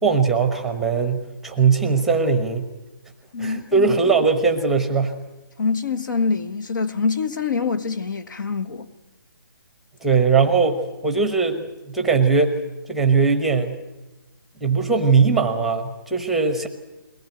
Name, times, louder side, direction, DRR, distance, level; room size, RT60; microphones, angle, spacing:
voice 1, 0.0-2.7 3.4-5.2 10.0-12.6 12.9-13.8 14.6-16.7, right 5 dB, ahead, 1.0 m, -20 dB
voice 2, 3.3-3.9 5.6-8.9, left 4 dB, 60° left, 1.5 m, -25 dB
22.0 x 19.0 x 9.2 m
hypercardioid pair, 165°, 12 cm